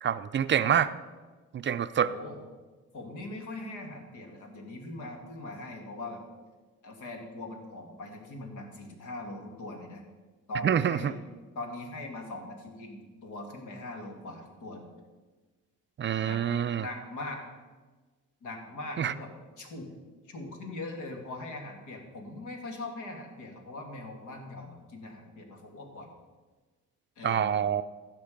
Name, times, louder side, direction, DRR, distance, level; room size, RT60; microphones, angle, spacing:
voice 1, 0.0-0.9 1.5-2.1 10.6-11.1 16.0-16.9 19.0-19.1 27.2-27.8, right 8 dB, 40° right, 12 dB, 0.4 m, -26 dB
voice 2, 2.0-2.4 2.9-6.2 6.8-10.0 10.5-11.2 11.5-14.9 16.2-16.4 16.7-17.4 18.4-19.9 20.3-26.1 27.2-27.6, left 2 dB, 80° left, 3 dB, 2.1 m, -41 dB
15.0 x 6.0 x 5.1 m, 1.3 s
cardioid pair, 90°, 30 cm